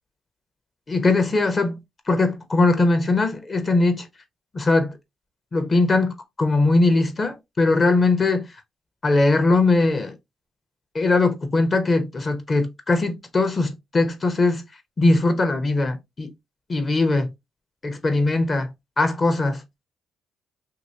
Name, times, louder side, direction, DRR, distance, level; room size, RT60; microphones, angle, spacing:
voice 1, 0.9-1.8 2.1-4.1 4.5-5.0 5.5-8.5 9.0-10.2 10.9-14.6 15.0-16.3 16.7-17.3 17.8-18.7 19.0-19.6, left 2 dB, 35° left, 0.9 m, -20 dB
2.9 x 2.8 x 2.7 m
cardioid pair, 90°, 0 cm